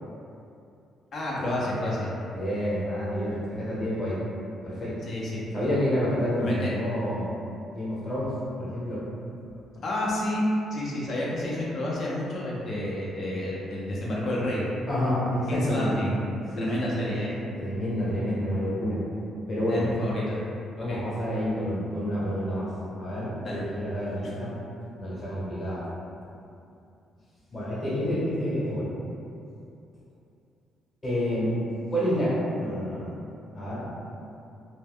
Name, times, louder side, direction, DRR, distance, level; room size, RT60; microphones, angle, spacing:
voice 1, 1.1-2.1 5.0-5.4 6.4-6.7 9.8-10.4 10.7-14.7 15.5-16.2 16.6-17.4 19.6-20.4 20.8-21.0 23.4-23.6 24.2-24.3, left 1 dB, 50° left, -5 dB, 0.6 m, -30 dB
voice 2, 2.3-4.2 4.6-5.0 5.5-7.3 7.7-9.0 14.9-16.0 16.5-17.1 17.6-19.0 19.5-19.9 20.7-22.7 23.0-24.5 25.0-25.8 27.5-28.9 31.0-31.6 31.9-33.1 33.5-33.9, equal, 25° left, -9 dB, 1.0 m, -28 dB
2.1 x 2.1 x 3.4 m, 2.6 s
cardioid pair, 120°, 0 cm